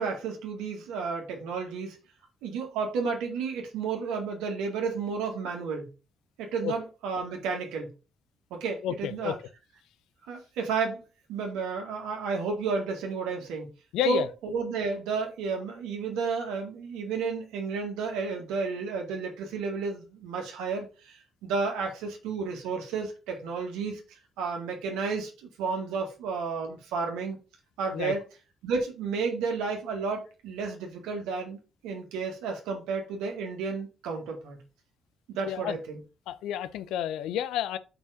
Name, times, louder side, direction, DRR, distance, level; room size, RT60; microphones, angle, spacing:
voice 1, 0.0-2.0 2.4-5.9 6.4-7.9 8.5-9.4 10.3-11.0 11.3-13.7 14.1-24.0 24.4-27.4 27.8-28.2 28.6-34.6 35.3-36.0, right 5 dB, 80° right, 2.0 m, -32 dB
voice 2, 8.8-9.3 13.9-14.3 27.9-28.1 35.5-35.8 36.3-37.8, left 11 dB, 80° left, 0.5 m, -30 dB
5.5 x 4.7 x 5.1 m
hypercardioid pair, 50°, 0 cm